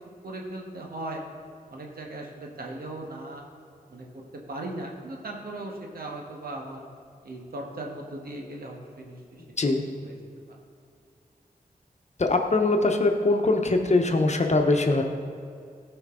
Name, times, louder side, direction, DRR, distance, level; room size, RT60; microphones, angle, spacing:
voice 1, 0.2-1.2 1.7-3.4 3.9-6.9 7.2-9.7 10.0-10.1, right 2 dB, 85° right, 0 dB, 1.4 m, -38 dB
voice 2, 9.4-9.8 12.2-15.0, left 2 dB, 50° left, 4 dB, 1.0 m, -22 dB
15.0 x 5.2 x 3.8 m, 2.3 s
cardioid pair, 60°, 15 cm